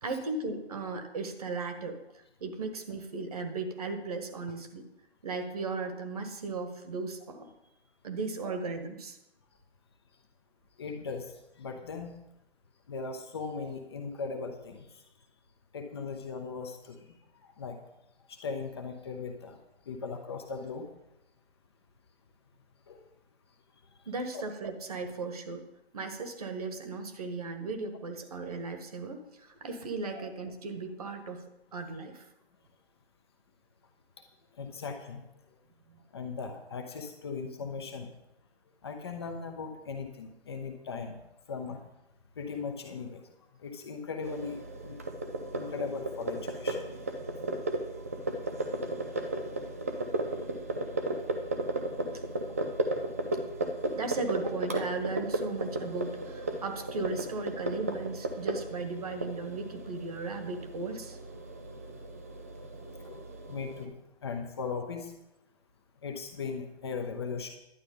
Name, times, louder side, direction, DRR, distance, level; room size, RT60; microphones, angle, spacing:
voice 1, 0.0-4.8 5.2-7.5 8.0-9.2 24.0-25.6 25.9-31.4 31.7-32.3 35.9-36.0 53.9-61.2, right 3 dB, 35° right, 6 dB, 1.6 m, -36 dB
voice 2, 10.8-11.3 11.6-12.1 12.9-14.8 15.7-17.0 17.6-17.8 18.3-19.6 19.9-20.9 22.9-23.0 30.1-30.2 34.6-35.2 36.1-38.1 38.8-41.1 41.5-41.8 42.4-43.2 43.6-44.6 44.8-45.0 45.5-46.8 52.5-52.6 63.0-63.2 63.5-63.9 64.2-65.1 66.0-67.5, left 5 dB, 25° left, 4 dB, 1.0 m, -38 dB
sound 1, 44.2-63.8, right 2 dB, 15° right, 0.5 m, -35 dB
11.5 x 9.5 x 5.4 m, 0.87 s
figure-of-eight pair, 140°, 32 cm